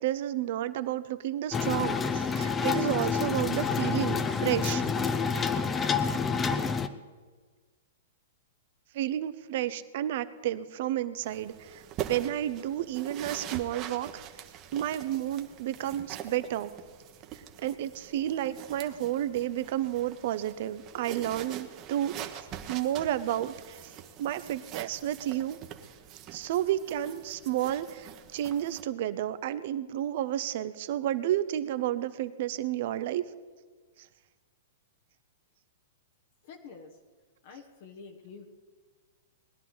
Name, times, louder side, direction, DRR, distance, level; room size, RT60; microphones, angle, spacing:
voice 1, 0.0-4.8 8.9-14.1 14.7-16.7 17.6-23.9 24.2-25.6 26.3-33.2, right 12 dB, 60° right, 13 dB, 0.8 m, -31 dB
sound 1, 1.5-6.9, left 5 dB, 20° left, 0.7 m, -28 dB
sound 2, 11.2-28.8, right 10 dB, 35° right, 1.2 m, -44 dB
voice 2, 36.4-36.9 37.4-38.5, left 5 dB, 60° left, 3 dB, 1.4 m, -47 dB
20.0 x 11.0 x 4.0 m, 1.5 s
hypercardioid pair, 125°, 0 cm